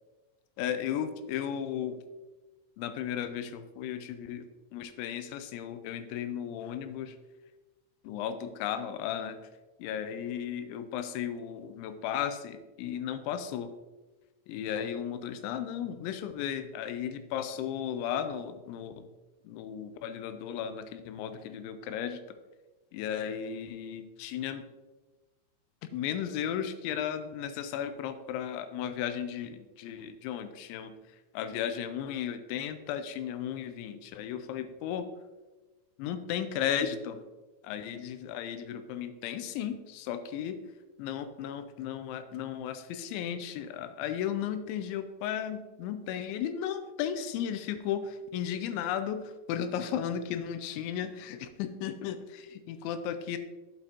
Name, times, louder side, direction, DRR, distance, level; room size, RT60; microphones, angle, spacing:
voice 1, 0.6-2.0 2.8-7.2 8.0-9.4 9.8-13.7 14.5-19.1 19.4-22.4 22.9-24.7 25.9-31.0 31.3-35.1 36.0-37.2 37.6-40.6 41.0-53.4, left 9 dB, 85° left, 10 dB, 2.9 m, -35 dB
8.5 x 7.8 x 2.9 m, 1.1 s
omnidirectional pair, 5.3 m